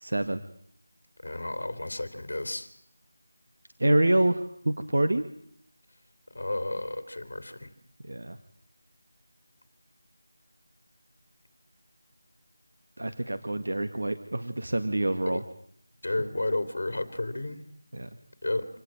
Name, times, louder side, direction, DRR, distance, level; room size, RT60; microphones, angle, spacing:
voice 1, 0.0-0.4 3.8-5.3 8.0-8.4 13.0-15.4 17.9-18.1, right 1 dB, 60° right, 9 dB, 1.8 m, -26 dB
voice 2, 1.2-2.7 6.3-7.7 15.2-15.4 16.0-17.6 18.4-18.6, left 2 dB, 45° left, 10 dB, 3.1 m, -32 dB
27.0 x 17.5 x 9.0 m, 0.66 s
figure-of-eight pair, 180°, 0 cm